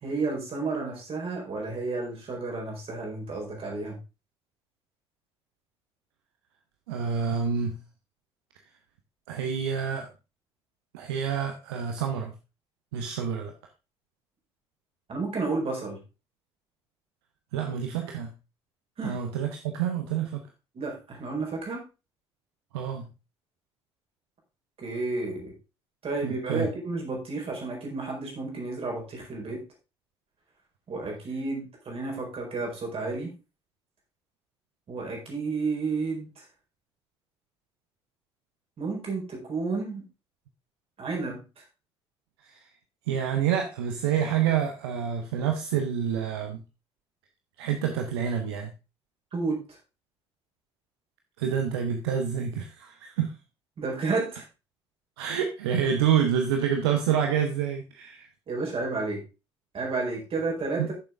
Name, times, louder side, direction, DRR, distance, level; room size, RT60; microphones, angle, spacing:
voice 1, 0.0-4.0 15.1-16.0 19.0-19.2 20.7-21.8 24.8-25.5 26.0-29.6 30.9-33.3 34.9-36.4 38.8-40.0 41.0-41.6 49.3-49.6 53.8-54.4 58.5-59.2 59.7-60.9, right 3 dB, 45° right, 0 dB, 4.5 m, -31 dB
voice 2, 6.9-7.8 9.3-10.1 10.9-12.3 12.9-13.5 17.5-18.3 19.0-20.4 22.7-23.1 26.2-26.7 42.4-42.6 43.1-46.6 47.6-48.7 51.4-53.4 55.2-58.3 60.8-60.9, right 8 dB, 70° right, 5 dB, 0.9 m, -28 dB
11.0 x 7.0 x 3.6 m, 0.29 s
figure-of-eight pair, 45°, 14 cm